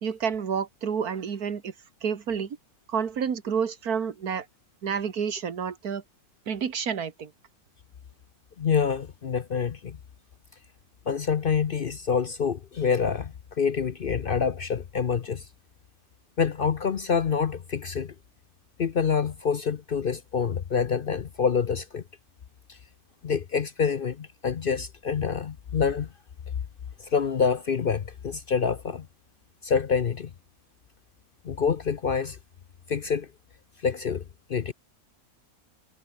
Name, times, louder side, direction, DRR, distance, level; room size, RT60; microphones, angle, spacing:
voice 1, 0.0-1.7 2.0-2.6 2.9-4.5 4.8-6.0 6.5-7.3, right 7 dB, 85° right, 2.1 m, -29 dB
voice 2, 8.6-10.0 11.1-15.4 16.4-18.1 18.8-22.0 22.7-22.8 23.2-26.1 27.0-29.1 29.6-30.3 31.4-32.4 32.9-33.3 33.8-34.2 34.5-34.7, left 6 dB, 50° left, 0.7 m, -26 dB
omnidirectional pair, 1.5 m